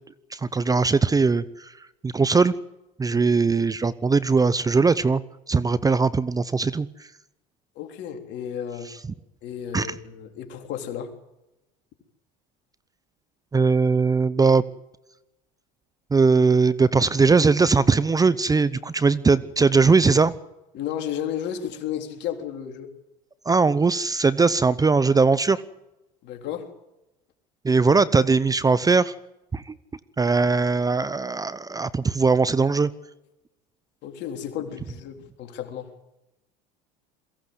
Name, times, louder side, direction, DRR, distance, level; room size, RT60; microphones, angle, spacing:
voice 1, 0.3-1.7 2.0-2.5 3.0-5.2 5.5-6.9 9.7-9.9 13.5-14.6 16.1-20.3 23.5-25.6 27.6-29.1 29.5-29.7 30.2-32.9, right 4 dB, 15° right, 17 dB, 0.8 m, -20 dB
voice 2, 7.8-8.9 9.4-11.1 20.7-22.9 26.2-26.7 34.0-35.9, left 9 dB, 55° left, 5 dB, 3.6 m, -33 dB
22.5 x 16.5 x 8.2 m, 0.94 s
hypercardioid pair, 90°, 21 cm